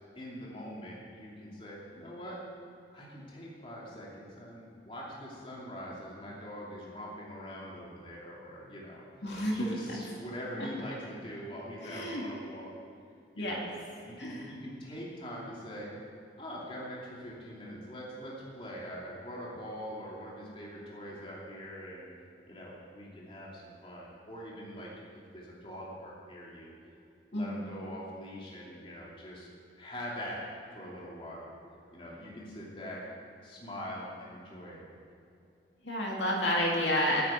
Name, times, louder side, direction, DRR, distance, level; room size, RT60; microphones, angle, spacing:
voice 1, 0.1-2.4 2.9-12.7 13.3-13.6 14.0-15.9 16.4-22.1 22.5-24.9 25.3-26.7 27.3-29.5 29.8-31.5 31.9-33.0 33.4-34.8, equal, 30° left, -5 dB, 2.8 m, -43 dB
voice 2, 9.2-9.7 11.8-12.2 13.4-13.7 14.2-14.5 27.3-27.6 35.8-37.2, left 1 dB, 85° left, -2 dB, 2.5 m, -30 dB
9.7 x 9.5 x 9.1 m, 2.6 s
head